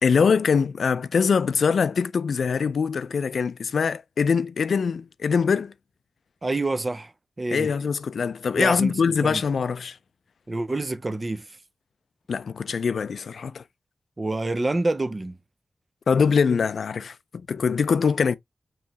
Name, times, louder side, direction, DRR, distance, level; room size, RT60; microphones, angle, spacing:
voice 1, 0.0-5.7 7.5-10.0 12.3-13.6 16.1-18.3, left 6 dB, 80° left, 0.3 m, -23 dB
voice 2, 6.4-7.1 7.4-7.7 8.6-8.9 9.2-9.4 10.5-11.5 14.2-15.4, right 2 dB, 30° right, 0.5 m, -27 dB
4.7 x 3.1 x 2.8 m
wide cardioid pair, 135°, 0 cm